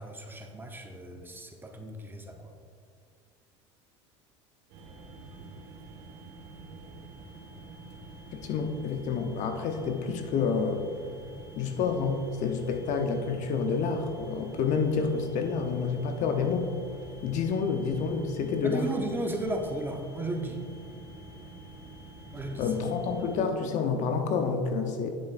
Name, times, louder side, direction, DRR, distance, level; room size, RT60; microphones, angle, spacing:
voice 1, 0.0-2.5 18.6-20.6 22.3-22.7, right 1 dB, 15° right, 3 dB, 0.9 m, -35 dB
sound 1, 4.7-23.4, right 2 dB, 70° right, 1.5 m, -47 dB
voice 2, 8.3-10.8 11.6-16.7 17.2-18.8 22.6-25.1, left 5 dB, 55° left, 6 dB, 0.8 m, -29 dB
11.0 x 6.5 x 2.5 m, 2.3 s
hypercardioid pair, 80°, 15 cm